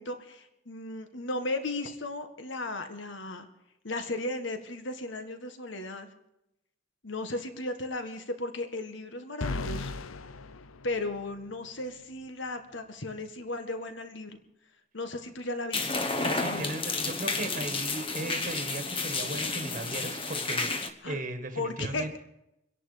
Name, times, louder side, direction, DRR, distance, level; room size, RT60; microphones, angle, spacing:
voice 1, 0.0-3.5 3.8-6.1 7.0-9.9 10.8-14.4 14.9-16.7 21.0-21.2 21.5-22.2, left 2 dB, 65° left, 8 dB, 1.8 m, -35 dB
sound 1, 9.4-11.5, left 3 dB, 90° left, 0.7 m, -37 dB
sound 2, 15.7-20.9, left 3 dB, 25° left, 1.1 m, -31 dB
voice 2, 16.2-22.2, right 1 dB, 35° right, 6 dB, 1.6 m, -37 dB
25.5 x 11.0 x 5.1 m, 0.85 s
head